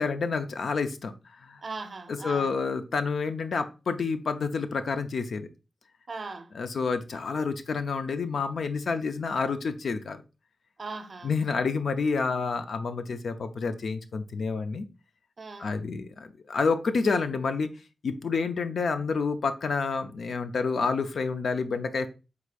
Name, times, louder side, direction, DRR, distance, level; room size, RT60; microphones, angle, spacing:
voice 1, 0.0-1.6 2.2-5.5 6.6-10.2 11.2-14.8 15.6-17.7 18.0-22.1, left 4 dB, 75° left, 0.5 m, -29 dB
voice 2, 1.6-2.6 6.1-6.5 10.8-11.3 15.4-15.8, right 3 dB, 50° right, 0.6 m, -39 dB
4.8 x 3.6 x 2.4 m
cardioid pair, 80°, 0 cm